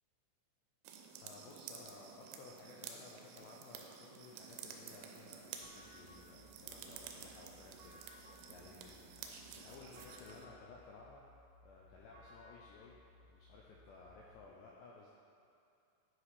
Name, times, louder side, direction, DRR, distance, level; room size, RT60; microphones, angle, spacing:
sound 1, 0.8-10.5, right 7 dB, 90° right, 3.3 m, -52 dB
voice 1, 1.2-11.2 11.6-13.0 13.3-15.1, left 4 dB, 85° left, -3 dB, 2.5 m, -57 dB
sound 2, 5.6-14.3, left 2 dB, 70° right, 2.3 m, -62 dB
9.5 x 4.9 x 4.8 m, 2.7 s
omnidirectional pair, 5.7 m